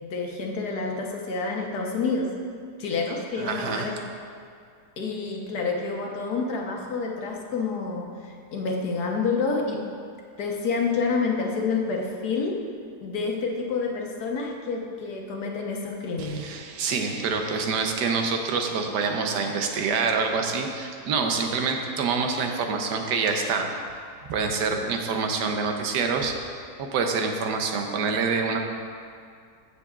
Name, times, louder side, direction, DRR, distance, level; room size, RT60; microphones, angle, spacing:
voice 1, 0.0-2.3 2.8-4.0 5.0-8.1 8.5-9.8 10.4-12.6 13.0-16.4, left 4 dB, 70° left, 0 dB, 1.5 m, -28 dB
voice 2, 3.4-4.0 16.2-24.0 24.3-26.3 26.8-28.6, right 4 dB, 80° right, 4 dB, 1.4 m, -26 dB
15.0 x 6.8 x 2.4 m, 2.3 s
omnidirectional pair, 1.8 m